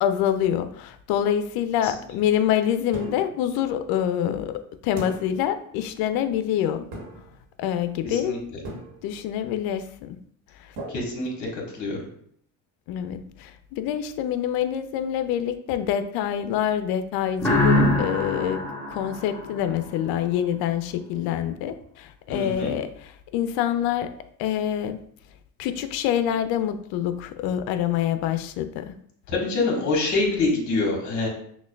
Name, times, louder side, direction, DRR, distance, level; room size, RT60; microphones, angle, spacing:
voice 1, 0.0-6.8 7.6-8.4 9.0-10.2 10.6-10.8 12.9-25.0 25.6-28.9, left 10 dB, 65° left, 10 dB, 0.5 m, -26 dB
sound 1, 2.9-3.5 5.0-5.5 6.9-7.4 8.6-9.2 10.8-11.7, right 1 dB, 70° right, 1.3 m, -38 dB
voice 2, 8.0-8.4 10.9-11.5 11.7-12.0 22.3-22.7 29.3-31.3, left 3 dB, 45° left, -1 dB, 1.4 m, -25 dB
sound 2, 17.4-20.1, left 2 dB, 5° left, 1.4 m, -24 dB
5.8 x 2.2 x 2.3 m, 0.65 s
cardioid pair, 115°, 40 cm